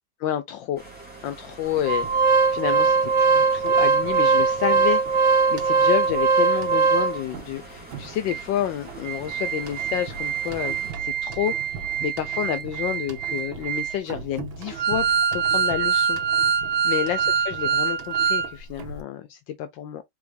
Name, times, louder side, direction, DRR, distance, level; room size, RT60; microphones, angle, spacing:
voice 1, 0.2-0.8 1.2-2.1 2.5-16.2 16.8-17.2 17.5-20.0, left 11 dB, 75° left, 1.3 m, -29 dB
sound 1, 0.8-10.9, right 2 dB, 5° right, 2.1 m, -44 dB
Organ, 1.9-7.4 7.9-8.0 8.3-8.4 8.9-18.5 18.8-18.9, right 5 dB, 85° right, 1.9 m, -22 dB
4.9 x 4.0 x 2.5 m
omnidirectional pair, 2.1 m